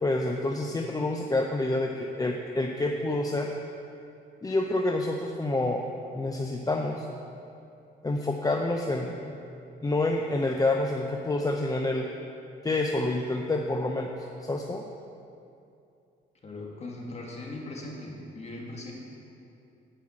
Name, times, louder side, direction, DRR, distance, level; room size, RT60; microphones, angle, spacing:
voice 1, 0.0-3.5 4.4-7.1 8.0-9.4 9.8-12.0 12.6-14.1 14.4-14.8, left 2 dB, 20° left, 2 dB, 0.6 m, -28 dB
voice 2, 16.4-18.9, left 2 dB, 35° left, -2 dB, 2.1 m, -39 dB
9.6 x 5.6 x 7.4 m, 2.6 s
cardioid pair, 90°, 20 cm